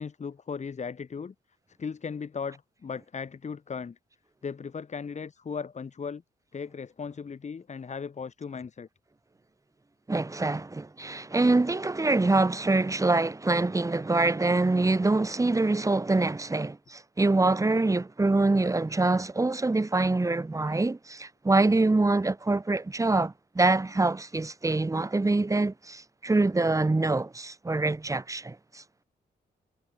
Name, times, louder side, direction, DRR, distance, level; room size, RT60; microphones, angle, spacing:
voice 1, 0.0-1.3 1.8-4.0 4.4-6.2 6.5-8.9, left 6 dB, 45° left, 3.0 m, -37 dB
voice 2, 10.1-28.8, right 2 dB, 20° right, 2.8 m, -25 dB
wide cardioid pair, 140°, 17 cm